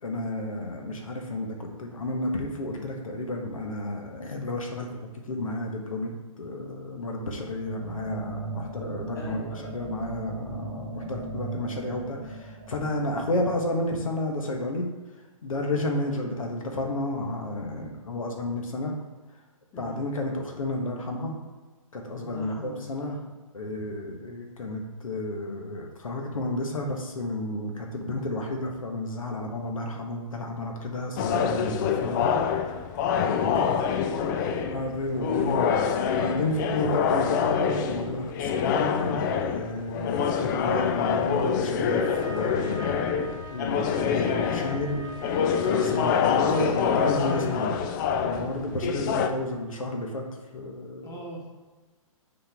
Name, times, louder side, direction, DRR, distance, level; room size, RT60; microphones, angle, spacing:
voice 1, 0.0-4.9 5.3-6.1 6.4-9.4 9.7-14.9 15.4-18.9 19.8-21.3 21.9-23.2 23.5-32.3 33.5-33.8 34.6-35.8 36.1-45.1 45.6-47.8 48.2-50.2 50.5-51.1, left 1 dB, 70° left, 2 dB, 1.3 m, -31 dB
sound 1, 7.5-14.2, right 2 dB, 40° right, 1.1 m, -38 dB
voice 2, 9.1-9.7 19.7-20.0 22.2-23.2 33.3-34.8 51.0-51.5, left 1 dB, 15° left, -2 dB, 1.5 m, -42 dB
sound 2, 31.2-49.3, left 7 dB, 35° left, 0.5 m, -26 dB
sound 3, 41.8-47.4, right 2 dB, 20° right, 0.6 m, -43 dB
9.1 x 4.3 x 3.5 m, 1.3 s
figure-of-eight pair, 125°, 18 cm